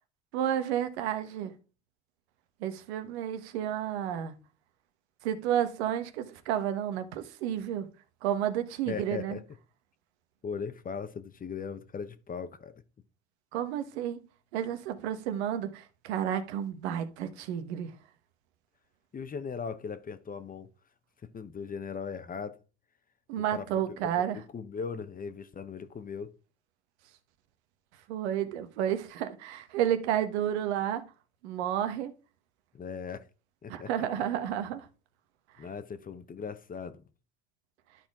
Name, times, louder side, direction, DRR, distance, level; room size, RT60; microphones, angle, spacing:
voice 1, 0.3-1.5 2.6-4.3 5.2-7.9 8.2-9.4 13.5-14.2 14.5-17.9 23.3-24.4 28.1-31.0 31.4-32.1 33.7-34.9, right 10 dB, 85° right, 1.2 m, -31 dB
voice 2, 8.9-9.4 10.4-12.7 19.1-20.7 21.3-22.6 23.5-23.7 24.1-26.3 32.7-33.3 33.6-33.9 35.6-37.0, left 6 dB, 25° left, 0.9 m, -38 dB
12.0 x 4.3 x 3.6 m
supercardioid pair, 95°, 32 cm